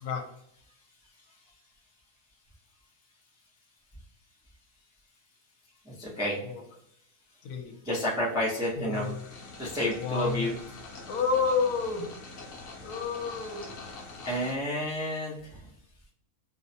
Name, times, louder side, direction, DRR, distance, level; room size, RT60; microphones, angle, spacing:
voice 1, 5.8-6.4 7.8-9.1 9.6-10.6 14.2-15.7, left 1 dB, 5° right, -5 dB, 0.3 m, -30 dB
voice 2, 7.4-7.8 8.8-9.2 10.0-10.5 11.1-12.1 12.8-13.7, left 5 dB, 80° left, 3 dB, 1.1 m, -30 dB
sound 1, 8.9-14.5, left 3 dB, 60° left, 0.9 m, -44 dB
3.0 x 2.0 x 2.7 m, 0.74 s
omnidirectional pair, 1.6 m